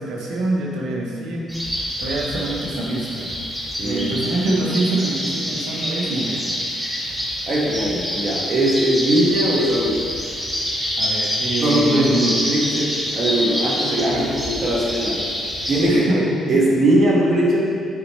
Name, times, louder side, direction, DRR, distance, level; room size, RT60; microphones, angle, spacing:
voice 1, 0.0-1.5 2.0-3.3 3.8-6.4 11.0-12.4 14.1-14.3 15.8-16.6, right 2 dB, 85° right, -2 dB, 1.3 m, -25 dB
sound 1, 1.5-15.8, equal, 10° right, 1.8 m, -26 dB
voice 2, 3.8-4.1 7.5-10.1 11.6-15.2 15.7-17.7, right 1 dB, 50° right, -4 dB, 1.9 m, -20 dB
9.4 x 5.3 x 3.4 m, 2.3 s
cardioid pair, 90°, 0 cm